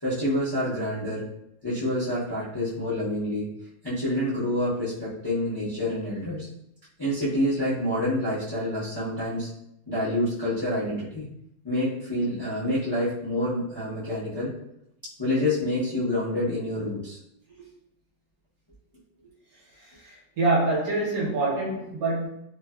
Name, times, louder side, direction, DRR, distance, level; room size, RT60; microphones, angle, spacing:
voice 1, 0.0-1.2 1.6-3.5 3.8-6.5 7.0-9.5 9.9-11.3 11.6-14.5 15.2-17.2, left 1 dB, 35° left, -11 dB, 0.4 m, -27 dB
voice 2, 20.0-22.3, right 2 dB, 65° right, -5 dB, 1.2 m, -25 dB
3.1 x 2.1 x 2.2 m, 0.77 s
omnidirectional pair, 1.7 m